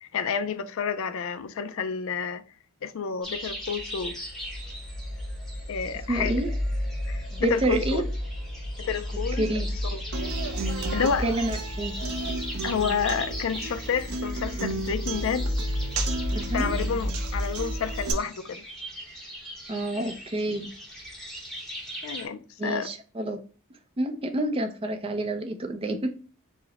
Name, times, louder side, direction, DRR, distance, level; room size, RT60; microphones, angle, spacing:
voice 1, 0.0-2.4 2.8-4.1 5.7-6.4 7.1-8.0 8.8-9.5 9.9-10.0 10.9-11.3 12.6-15.5 16.5-18.6 22.0-22.9, left 6 dB, 60° left, 0.4 m, -29 dB
sound 1, 3.2-22.3, equal, ahead, 0.8 m, -41 dB
sound 2, 3.4-18.2, equal, 40° left, 1.6 m, -32 dB
voice 2, 6.1-6.5 7.3-8.1 9.4-9.7 11.2-11.9 16.3-16.7 19.7-20.7 22.6-23.4 24.0-26.2, right 1 dB, 25° right, 0.5 m, -28 dB
Human voice / Acoustic guitar, 10.1-18.1, right 3 dB, 75° right, 0.6 m, -35 dB
4.7 x 2.1 x 4.0 m
head